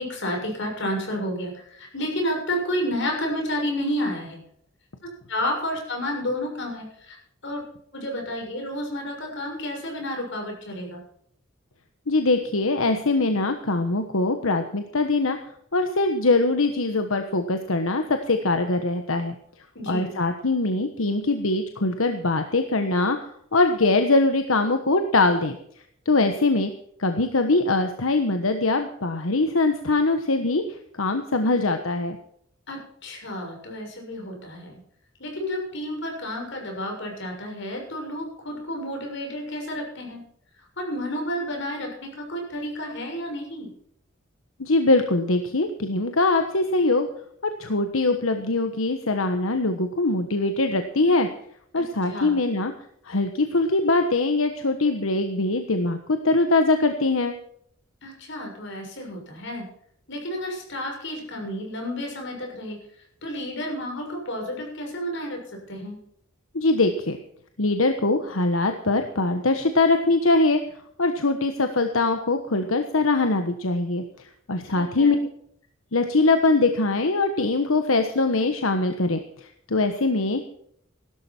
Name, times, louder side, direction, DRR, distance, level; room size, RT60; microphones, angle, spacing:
voice 1, 0.0-4.4 5.3-7.2 7.4-7.6 7.9-11.0 19.7-20.2 32.7-34.7 35.2-40.2 40.8-43.7 51.7-52.4 58.0-59.7 60.1-62.8 63.2-66.0 74.7-75.1, equal, 65° left, 1 dB, 6.7 m, -31 dB
voice 2, 12.1-15.4 15.7-19.3 19.9-23.2 23.5-25.6 26.0-26.7 27.0-30.6 31.0-32.2 44.6-47.1 47.4-51.3 51.7-52.7 53.1-57.3 66.5-67.2 67.6-70.6 71.0-74.0 74.5-75.2 75.9-79.2 79.7-80.4, left 2 dB, 90° left, 6 dB, 1.3 m, -22 dB
16.5 x 12.5 x 4.5 m, 0.67 s
head